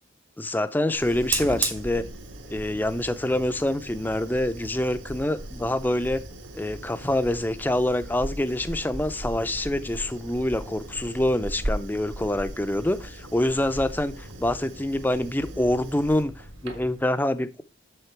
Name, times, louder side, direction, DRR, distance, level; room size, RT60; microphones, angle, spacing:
voice 1, 0.4-2.0 2.5-6.2 6.5-17.6, left 1 dB, 10° left, 12 dB, 0.4 m, -26 dB
Fire, 0.9-17.1, right 3 dB, 75° right, 1.6 m, -37 dB
7.0 x 6.6 x 4.5 m, 0.30 s
head